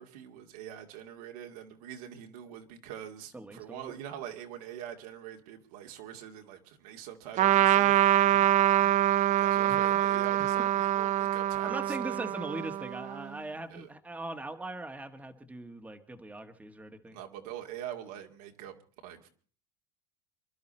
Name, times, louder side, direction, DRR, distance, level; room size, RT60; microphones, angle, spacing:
voice 1, 0.0-8.0 9.4-12.2 13.7-13.9 17.1-18.8 19.0-19.3, right 10 dB, 80° right, 3 dB, 2.5 m, -44 dB
voice 2, 3.3-4.0 8.2-8.9 9.6-9.8 10.4-10.5 11.6-17.2, right 2 dB, 5° right, 6 dB, 1.5 m, -41 dB
Trumpet, 7.4-13.2, right 12 dB, 40° right, 0.7 m, -25 dB
27.0 x 11.5 x 4.3 m, 0.42 s
supercardioid pair, 120°, 19 cm